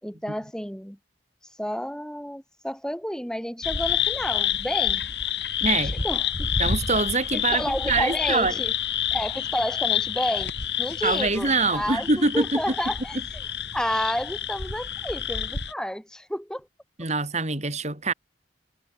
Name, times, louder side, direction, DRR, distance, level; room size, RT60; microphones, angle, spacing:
voice 1, 0.0-1.0 1.6-5.1 5.7-5.8 6.0-6.5 7.3-8.7 9.1-10.5 10.8-13.4 13.7-16.7, equal, 5° left, 4.5 m, -30 dB
sound 1, 3.6-15.7, left 8 dB, 70° left, 7.9 m, -28 dB
voice 2, 5.6-6.0 6.6-8.6 11.0-12.6 17.0-18.1, right 3 dB, 40° right, 4.6 m, -24 dB
head